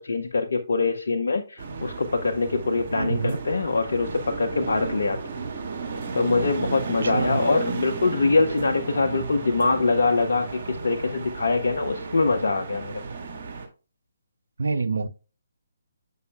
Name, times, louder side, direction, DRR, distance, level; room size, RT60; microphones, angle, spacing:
voice 1, 0.0-5.2 6.1-13.0, left 3 dB, 65° left, 0.7 m, -24 dB
sound 1, 1.6-13.7, right 4 dB, 40° right, 1.6 m, -34 dB
voice 2, 2.9-3.4 7.0-7.5 14.6-15.1, right 4 dB, 70° right, 0.6 m, -26 dB
8.2 x 5.5 x 2.2 m
figure-of-eight pair, 140°, 0 cm